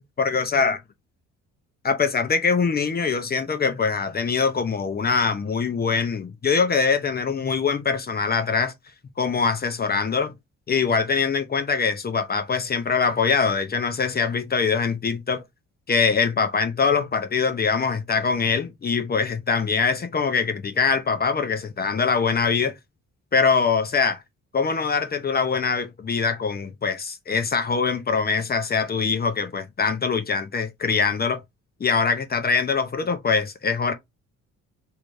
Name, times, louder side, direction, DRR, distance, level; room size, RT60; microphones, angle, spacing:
voice 1, 0.2-0.8 1.8-8.7 9.2-10.3 10.7-15.4 15.9-22.8 23.3-24.2 24.5-31.4 31.8-33.9, left 5 dB, 30° left, 0.7 m, -23 dB
3.3 x 3.3 x 2.6 m
cardioid pair, 90°, 30 cm